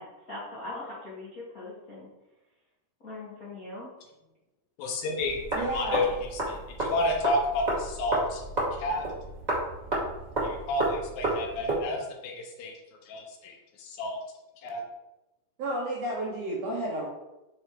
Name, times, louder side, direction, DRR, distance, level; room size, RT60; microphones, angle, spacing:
voice 1, 0.0-2.1 3.0-3.9, left 2 dB, 55° left, -8 dB, 0.9 m, -41 dB
voice 2, 4.8-8.4 8.7-9.1 10.4-14.2 14.6-14.9, left 1 dB, 75° left, 2 dB, 2.5 m, -31 dB
sound 1, 5.2-11.8, right 1 dB, 25° right, 0.8 m, -32 dB
voice 3, 5.5-6.0 15.6-17.1, right 1 dB, 65° right, -5 dB, 1.6 m, -31 dB
6.0 x 4.6 x 4.6 m, 1.0 s
omnidirectional pair, 4.4 m